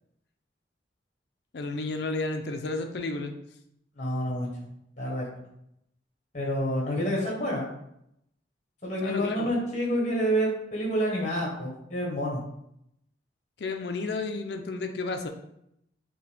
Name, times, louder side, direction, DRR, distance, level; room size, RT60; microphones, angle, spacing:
voice 1, 1.5-3.3 9.0-9.5 13.6-15.3, left 3 dB, 65° left, 6 dB, 0.5 m, -32 dB
voice 2, 4.0-4.5 5.0-5.3 6.3-7.7 8.8-12.4, equal, 40° left, -2 dB, 1.1 m, -28 dB
5.9 x 2.3 x 3.3 m, 0.79 s
head